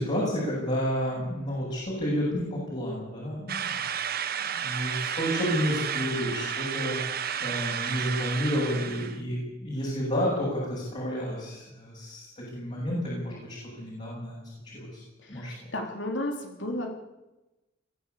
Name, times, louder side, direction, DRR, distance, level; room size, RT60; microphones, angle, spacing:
voice 1, 0.0-3.6 4.4-15.0 15.3-15.5, equal, 35° left, -6 dB, 7.9 m, -31 dB
sound 1, 3.5-9.2, right 8 dB, 55° right, 1.4 m, -32 dB
voice 2, 15.2-16.9, left 1 dB, 70° left, 3 dB, 3.7 m, -33 dB
22.5 x 14.5 x 8.5 m, 1.0 s
head